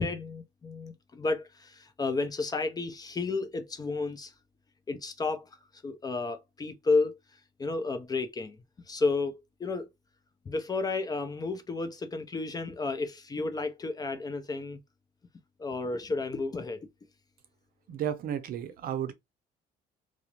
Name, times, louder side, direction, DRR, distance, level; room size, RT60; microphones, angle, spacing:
voice 1, 0.0-4.3 4.9-5.5 5.8-7.2 7.6-8.6 8.9-9.9 10.5-14.8 15.6-16.9, left 3 dB, 25° left, 0.4 m, -32 dB
voice 2, 17.9-19.1, right 10 dB, 60° right, 0.5 m, -33 dB
2.4 x 2.0 x 2.9 m
cardioid pair, 110°, 17 cm